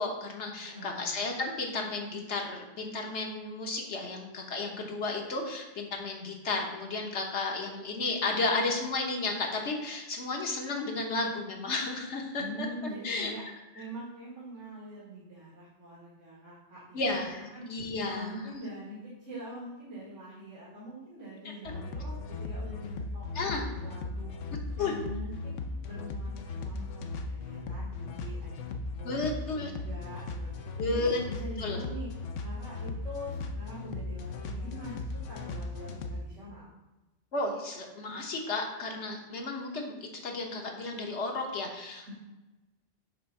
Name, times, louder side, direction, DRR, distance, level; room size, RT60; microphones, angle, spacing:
voice 1, 0.0-12.7 13.0-13.3 13.8-13.9 16.9-18.5 23.3-23.6 24.8-24.9 29.0-29.7 30.8-31.2 31.6-31.8 37.3-39.9 40.2-42.1, left 3 dB, 70° left, 1 dB, 1.4 m, -33 dB
voice 2, 0.7-1.1 12.4-13.4 13.7-17.6 18.0-24.4 24.8-25.6 25.9-32.1 32.4-36.7 42.1-42.2, equal, 85° right, -7 dB, 2.1 m, -44 dB
sound 1, 21.7-36.3, left 3 dB, 85° left, 1.0 m, -37 dB
6.7 x 3.5 x 5.4 m, 1.1 s
omnidirectional pair, 1.2 m